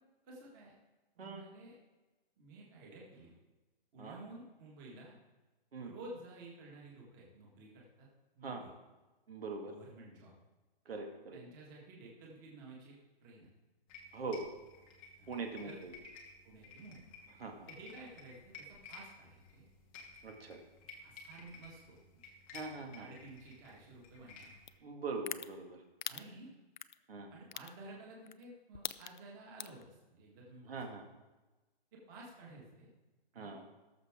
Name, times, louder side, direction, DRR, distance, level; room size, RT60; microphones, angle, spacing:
voice 1, 0.2-0.8 1.2-1.8 2.4-3.3 3.9-5.2 5.8-8.1 8.4-8.7 9.7-10.3 11.3-12.9 13.2-13.5 15.2-15.3 15.6-15.8 16.4-17.1 17.7-19.7 21.0-22.2 23.0-24.5 26.1-26.5 27.3-30.8 31.9-32.9 33.3-33.6, right 2 dB, 20° right, -3 dB, 1.8 m, -53 dB
voice 2, 9.3-9.7 10.9-11.4 14.1-14.5 15.3-15.9 17.4-17.7 20.2-20.6 22.5-23.1 24.8-25.8 27.1-27.3 30.7-31.0 33.4-33.6, right 3 dB, 75° right, 3 dB, 2.1 m, -42 dB
sound 1, 13.9-24.8, left 4 dB, 10° left, 0.7 m, -55 dB
sound 2, 24.7-24.8 25.3-25.5 26.0-26.2 26.8-27.0 27.5-27.7 28.3-28.4 28.7-29.2 29.6-29.8, left 9 dB, 50° left, 0.4 m, -39 dB
18.0 x 6.9 x 3.7 m, 1.2 s
hypercardioid pair, 170°, 30 cm